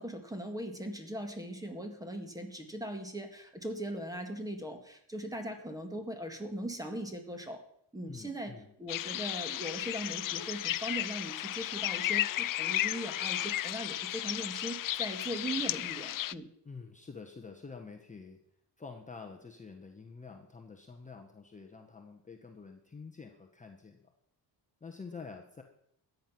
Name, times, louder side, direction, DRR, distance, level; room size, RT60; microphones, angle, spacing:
voice 1, 0.0-7.6 7.9-8.5 8.8-16.5, right 1 dB, 10° right, 5 dB, 1.8 m, -39 dB
voice 2, 8.1-8.7 16.6-18.4 18.8-24.0 24.8-25.6, left 4 dB, 15° left, 3 dB, 1.1 m, -48 dB
sound 1, 8.9-16.3, left 14 dB, 50° left, 0.4 m, -34 dB
14.0 x 9.3 x 6.0 m, 0.70 s
wide cardioid pair, 155°, 42 cm